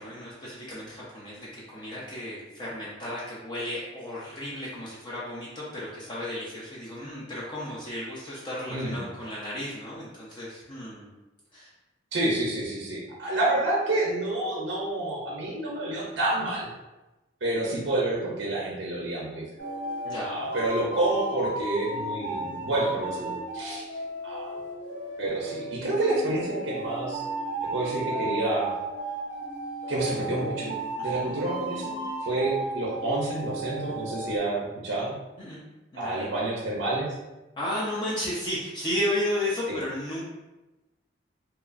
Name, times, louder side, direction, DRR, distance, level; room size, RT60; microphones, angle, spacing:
voice 1, 0.0-11.1 11.5-11.7 20.0-20.3 23.9-24.0 31.0-31.3 35.4-35.6 35.9-36.3 37.6-40.2, left 1 dB, 25° left, -7 dB, 0.4 m, -33 dB
voice 2, 12.1-16.7 17.4-19.4 20.2-23.9 24.2-24.6 25.2-27.2 27.7-28.7 29.9-35.1 35.9-37.1, right 2 dB, 65° right, -4 dB, 0.5 m, -29 dB
sound 1, 19.6-34.4, right 1 dB, 70° left, 0.8 m, -34 dB
2.8 x 2.3 x 2.4 m, 1.0 s
head